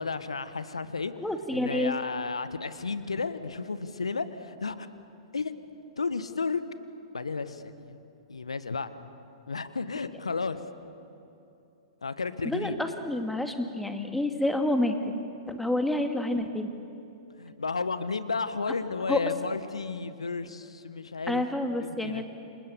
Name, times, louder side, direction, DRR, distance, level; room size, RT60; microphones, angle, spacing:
voice 1, 0.0-1.1 1.5-4.9 5.3-5.5 6.0-6.6 7.1-8.0 8.3-8.9 9.5-10.6 12.0-12.8 17.4-21.4 21.8-22.2, left 4 dB, 80° left, 12 dB, 1.5 m, -32 dB
voice 2, 1.2-1.9 12.4-15.0 15.5-16.7 19.1-19.2 21.3-22.3, left 1 dB, 5° left, 5 dB, 2.2 m, -28 dB
29.0 x 27.5 x 7.2 m, 2.8 s
figure-of-eight pair, 110°, 3 cm